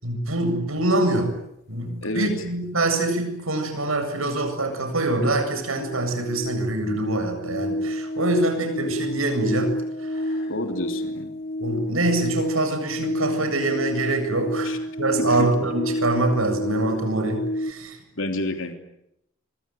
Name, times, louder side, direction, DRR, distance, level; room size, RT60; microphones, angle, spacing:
voice 1, 0.0-1.3 1.7-9.7 10.0-10.4 11.6-18.0, right 2 dB, 85° right, 7 dB, 7.8 m, -25 dB
sound 1, 4.1-4.2 4.5-17.7, left 1 dB, 50° left, 2.6 m, -30 dB
voice 2, 10.5-11.4 14.6-14.8 15.2-15.5 18.2-18.8, left 1 dB, 70° left, 5 dB, 3.2 m, -29 dB
25.5 x 25.0 x 9.2 m, 0.79 s
head